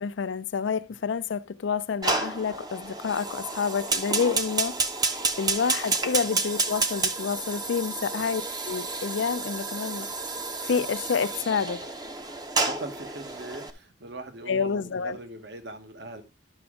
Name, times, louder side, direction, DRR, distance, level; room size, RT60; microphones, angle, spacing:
voice 1, 0.0-4.8 5.1-8.4 8.7-10.1 10.6-11.9 14.5-15.2, left 6 dB, 85° left, 0.5 m, -28 dB
Fire, 2.0-13.7, right 3 dB, 20° right, 0.6 m, -30 dB
voice 2, 12.6-16.2, right 2 dB, 65° right, 1.0 m, -40 dB
11.5 x 6.0 x 3.6 m
head